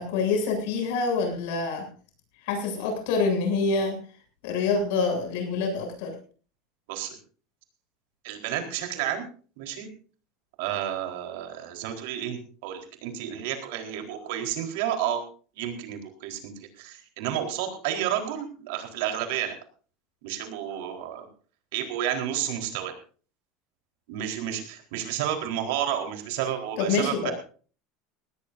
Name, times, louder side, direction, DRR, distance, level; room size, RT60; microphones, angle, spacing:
voice 1, 0.0-1.9 2.4-4.0 4.4-6.1 26.8-27.3, left 4 dB, 70° left, 4 dB, 7.5 m, -26 dB
voice 2, 8.2-9.2 9.6-9.9 10.6-15.2 15.6-19.5 20.2-21.3 21.7-22.9 24.1-27.3, right 10 dB, 70° right, 5 dB, 4.1 m, -31 dB
18.5 x 18.5 x 2.7 m, 0.40 s
cardioid pair, 175°, 0 cm